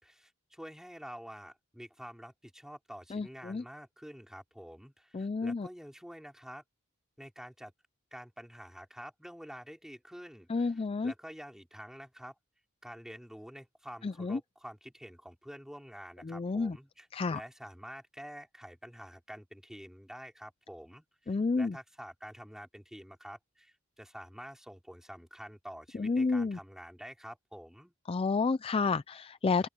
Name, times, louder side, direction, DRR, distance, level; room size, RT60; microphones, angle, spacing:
voice 1, 0.0-6.6 7.2-7.7 8.1-12.3 12.8-27.9, equal, ahead, 4.7 m, -48 dB
voice 2, 3.1-3.6 5.1-5.7 10.5-11.1 14.0-14.4 16.3-16.8 17.1-17.4 21.3-21.8 26.0-26.6 28.1-29.7, left 4 dB, 25° left, 0.4 m, -30 dB
open air
head